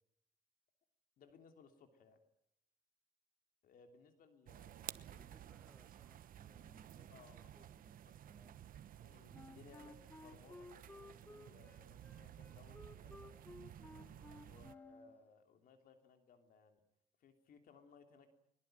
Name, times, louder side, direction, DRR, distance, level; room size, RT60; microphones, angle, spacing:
voice 1, 1.2-2.2 3.6-5.3 7.1-8.1 8.7-13.4 14.3-16.8 17.2-18.3, left 5 dB, 70° left, 6 dB, 3.2 m, -64 dB
sound 1, 4.5-14.7, right 11 dB, 65° right, 1.1 m, -54 dB
voice 2, 5.2-8.6 13.9-14.3, right 1 dB, 5° right, 8 dB, 1.9 m, -68 dB
Wind instrument woodwind instrument, 9.3-15.2, left 2 dB, 10° left, 1.3 m, -57 dB
22.5 x 21.0 x 9.2 m, 0.75 s
cardioid pair, 110°, 15 cm